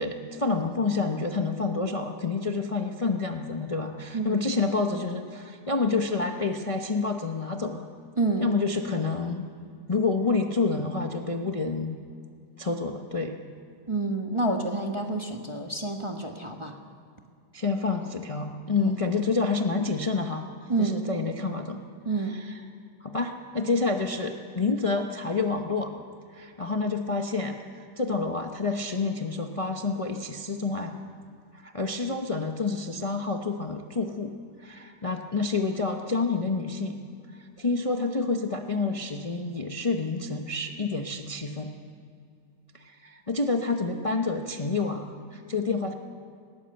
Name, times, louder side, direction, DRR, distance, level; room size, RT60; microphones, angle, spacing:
voice 1, 0.0-7.9 8.4-9.4 9.9-12.0 12.6-13.4 17.5-20.5 20.8-21.8 22.1-22.6 23.0-25.9 26.3-31.0 31.5-34.3 34.6-37.0 37.3-41.7 42.7-45.9, left 4 dB, 25° left, 3 dB, 0.8 m, -28 dB
voice 2, 8.2-8.5 13.9-16.7 18.8-18.9 20.7-21.0 22.0-22.3, right 3 dB, 20° right, 3 dB, 1.1 m, -28 dB
20.5 x 17.5 x 7.9 m, 2.4 s
omnidirectional pair, 1.9 m